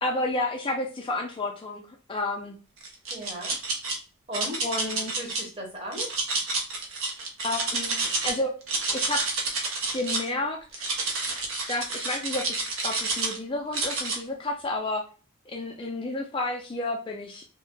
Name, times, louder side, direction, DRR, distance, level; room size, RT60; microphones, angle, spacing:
voice 1, 0.0-2.6 4.6-5.3 7.4-8.5 8.9-9.2 9.9-10.8 11.7-15.0 15.5-17.5, left 2 dB, 25° left, 1 dB, 0.3 m, -31 dB
sound 1, 2.8-3.9 4.3-5.4 5.9-8.3 8.6-10.3 10.7-13.4 13.7-14.2, right 3 dB, 75° right, 0.8 m, -29 dB
voice 2, 3.1-3.5 4.3-6.1, right 1 dB, 25° right, -1 dB, 0.9 m, -37 dB
2.6 x 2.1 x 3.6 m, 0.36 s
head